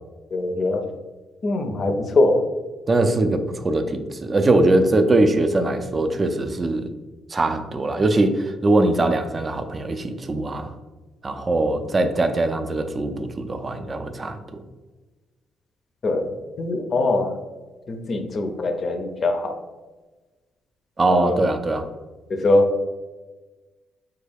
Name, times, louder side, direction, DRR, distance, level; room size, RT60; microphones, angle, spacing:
voice 1, 0.3-0.8 1.4-2.4 16.0-16.3 16.6-17.3 17.9-19.6 21.1-21.3 22.3-22.6, left 2 dB, 45° left, 6 dB, 0.5 m, -22 dB
voice 2, 2.9-6.9 7.3-10.7 11.2-14.6 21.0-21.9, right 2 dB, 30° right, 8 dB, 0.3 m, -21 dB
3.5 x 2.3 x 3.3 m, 1.2 s
cardioid pair, 90°, 0 cm